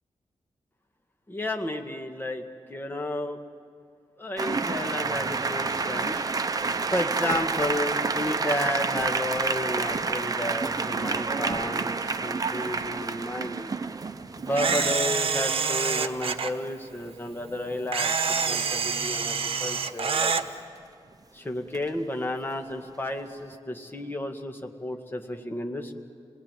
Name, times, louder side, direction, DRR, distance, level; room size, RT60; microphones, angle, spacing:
voice 1, 1.3-3.4 4.2-6.2 6.9-13.7 14.4-18.1 18.5-20.3 21.3-25.9, left 1 dB, 20° left, 4 dB, 1.8 m, -32 dB
sound 1, 4.4-15.1 17.1-17.2 17.5-17.7 21.7-22.0, right 4 dB, 35° right, 0.8 m, -29 dB
Camera, 14.5-16.5 17.9-20.4, right 5 dB, 60° right, 1.1 m, -26 dB
28.0 x 19.5 x 9.1 m, 2.3 s
wide cardioid pair, 150°, 10 cm